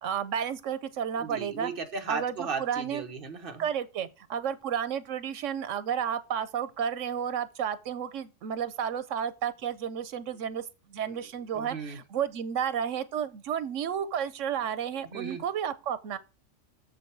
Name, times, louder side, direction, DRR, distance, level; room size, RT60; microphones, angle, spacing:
voice 1, 0.0-1.7 2.1-3.0 3.6-16.2, right 8 dB, 85° right, 1.1 m, -32 dB
voice 2, 1.2-3.7 11.5-12.0 15.1-15.4, right 5 dB, 50° right, 1.2 m, -36 dB
6.9 x 6.4 x 4.6 m
omnidirectional pair, 1.3 m